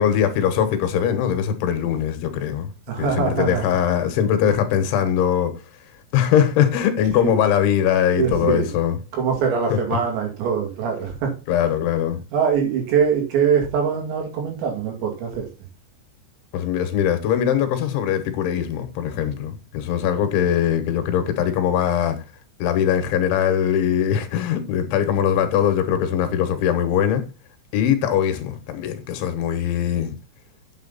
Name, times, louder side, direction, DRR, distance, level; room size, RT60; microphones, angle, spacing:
voice 1, 0.0-2.7 3.0-5.6 6.1-9.0 9.7-9.8 11.5-12.2 16.5-22.2 22.6-27.2 27.7-30.1, left 9 dB, 75° left, 3.5 m, -21 dB
voice 2, 2.9-3.6 7.2-7.3 8.2-8.7 9.1-11.3 12.3-15.5, right 7 dB, 65° right, 4.6 m, -22 dB
9.4 x 7.3 x 4.0 m
omnidirectional pair, 5.6 m